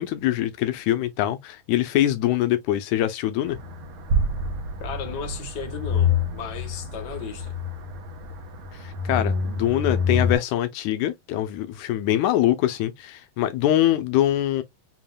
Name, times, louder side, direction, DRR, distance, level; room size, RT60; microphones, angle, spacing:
voice 1, 0.0-3.6 8.8-14.6, left 13 dB, 80° left, 2.0 m, -23 dB
sound 1, 3.5-10.4, left 3 dB, 65° right, 1.5 m, -27 dB
voice 2, 4.8-7.5, left 6 dB, 45° left, 1.6 m, -35 dB
7.1 x 2.8 x 2.2 m
omnidirectional pair, 3.4 m